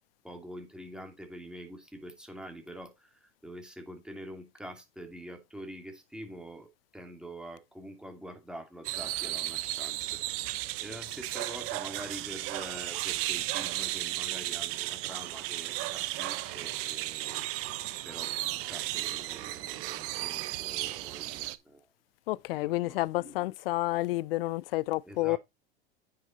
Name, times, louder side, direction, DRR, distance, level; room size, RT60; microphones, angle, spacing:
voice 1, 0.2-10.2 10.8-17.5 18.1-21.9 22.5-23.5 25.0-25.4, equal, 5° right, 2.8 m, -46 dB
sound 1, 8.8-21.6, right 17 dB, 50° right, 1.1 m, -34 dB
voice 2, 22.3-25.4, left 19 dB, 70° left, 0.5 m, -30 dB
9.6 x 5.9 x 4.2 m
hypercardioid pair, 95°, 30 cm